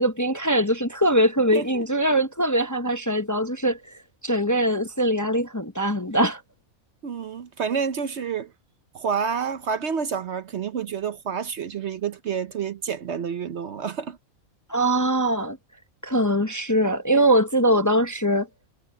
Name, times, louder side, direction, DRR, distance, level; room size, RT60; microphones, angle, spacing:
voice 1, 0.0-3.8 4.2-6.4 14.7-15.6 16.0-18.5, right 1 dB, 15° left, 0.8 m, -22 dB
voice 2, 1.5-1.8 7.0-8.5 8.9-14.2, right 6 dB, 55° right, 1.0 m, -29 dB
omnidirectional pair, 1.5 m